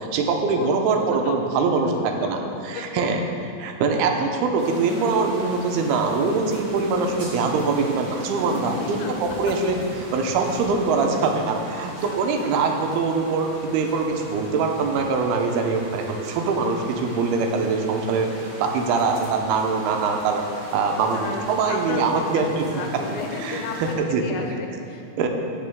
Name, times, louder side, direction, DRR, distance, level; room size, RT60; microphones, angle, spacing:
voice 1, 0.0-2.4 2.7-3.2 3.6-9.8 10.1-18.3 18.6-20.4 20.7-22.6 23.1-24.4 25.2-25.3, right 4 dB, 85° right, 3 dB, 2.6 m, -23 dB
voice 2, 0.5-1.4 1.8-3.1 8.4-9.4 10.3-10.5 11.8-12.8 20.8-25.0, left 5 dB, 80° left, 2 dB, 2.2 m, -35 dB
sound 1, 4.6-23.9, equal, 50° right, 1.3 m, -39 dB
15.5 x 6.0 x 3.6 m, 2.6 s
omnidirectional pair, 4.5 m